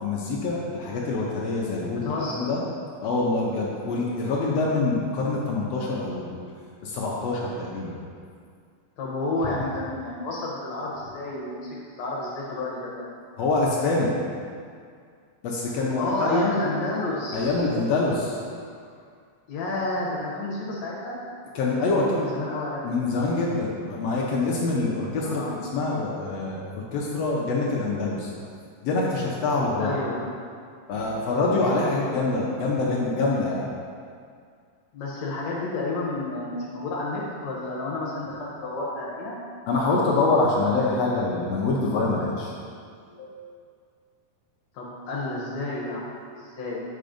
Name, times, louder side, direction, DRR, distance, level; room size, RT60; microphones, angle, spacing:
voice 1, 0.0-2.1 2.4-2.6 3.0-6.4 6.8-8.0 13.4-14.1 15.4-16.5 17.3-18.4 21.5-22.2 22.8-25.4 25.7-28.3 28.8-29.9 30.9-33.6 39.7-42.5 43.2-43.4, left 3 dB, 80° left, -4 dB, 1.4 m, -25 dB
voice 2, 2.0-2.5 9.0-13.1 15.7-17.7 19.5-21.2 21.6-22.8 25.2-25.5 29.8-30.3 34.9-39.4 44.7-46.8, left 2 dB, 65° left, -5 dB, 1.9 m, -30 dB
7.7 x 4.0 x 5.0 m, 2.2 s
omnidirectional pair, 3.9 m